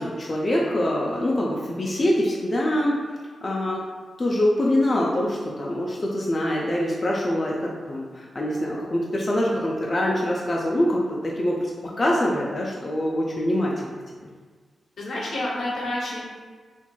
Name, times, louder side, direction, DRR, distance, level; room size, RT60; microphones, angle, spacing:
voice 1, 0.0-3.0 3.4-3.8 4.2-13.9 14.2-14.3, left 1 dB, 40° left, -3 dB, 0.4 m, -24 dB
voice 2, 15.0-16.2, left 1 dB, 75° left, -4 dB, 0.7 m, -29 dB
2.9 x 2.5 x 2.2 m, 1.5 s
supercardioid pair, 50°, 0 cm